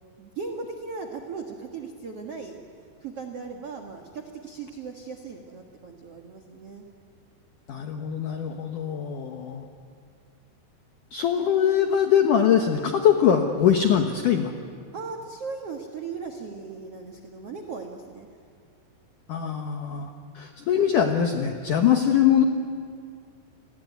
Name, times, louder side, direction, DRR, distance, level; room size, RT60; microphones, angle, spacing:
voice 1, 0.2-2.6 3.0-6.8 14.9-18.3, right 4 dB, 80° right, 3 dB, 1.3 m, -37 dB
voice 2, 7.7-9.7 11.1-14.5 19.3-22.4, left 8 dB, 80° left, 5 dB, 1.8 m, -22 dB
29.5 x 20.5 x 9.4 m, 2.2 s
omnidirectional pair, 5.6 m